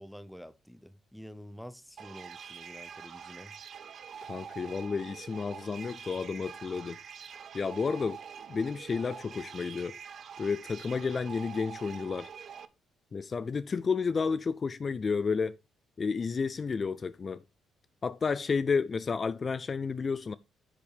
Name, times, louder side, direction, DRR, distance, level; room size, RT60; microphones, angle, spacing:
voice 1, 0.0-3.5, equal, ahead, 0.9 m, -48 dB
sound 1, 2.0-12.7, right 7 dB, 60° right, 0.8 m, -45 dB
voice 2, 4.2-7.0 7.5-8.2 8.5-10.0 10.4-12.3 13.1-15.6 16.0-17.4 18.0-20.3, left 5 dB, 40° left, 0.4 m, -31 dB
9.8 x 7.0 x 3.5 m
cardioid pair, 90°, 0 cm